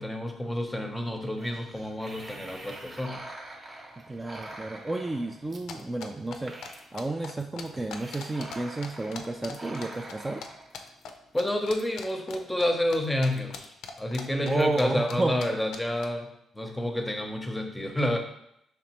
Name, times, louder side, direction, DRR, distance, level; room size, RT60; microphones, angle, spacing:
voice 1, 0.0-3.3 11.3-13.7 14.0-16.3 16.5-18.2, left 1 dB, 10° left, 4 dB, 0.7 m, -29 dB
sound 1, 1.4-11.7, right 2 dB, 40° right, 0.8 m, -45 dB
voice 2, 4.0-10.4 14.4-15.4, right 2 dB, 20° right, 3 dB, 0.3 m, -31 dB
sound 2, 5.7-8.6 8.8-10.5 10.7-11.1 11.4-13.0 13.2-14.8 15.1-15.2 15.4-15.5 15.7-16.0, left 6 dB, 80° left, 0.5 m, -41 dB
5.1 x 3.3 x 3.0 m, 0.78 s
cardioid pair, 90°, 0 cm